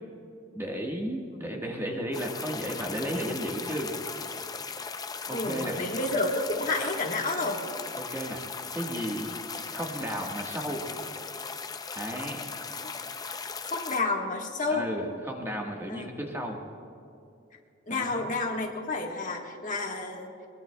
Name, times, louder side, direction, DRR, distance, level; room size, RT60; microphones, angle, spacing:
voice 1, 0.5-3.9 5.3-5.8 8.0-8.4 8.7-9.3 9.6-10.8 11.9-12.4 14.7-16.6 17.9-18.3, equal, 15° right, 0 dB, 1.4 m, -34 dB
sound 1, 2.1-14.0, left 5 dB, 20° left, 0.5 m, -38 dB
voice 2, 5.3-7.6 12.7-12.9 13.6-14.9 15.9-16.1 17.9-20.3, left 2 dB, 40° left, 1 dB, 1.4 m, -30 dB
22.0 x 21.5 x 2.3 m, 2.5 s
head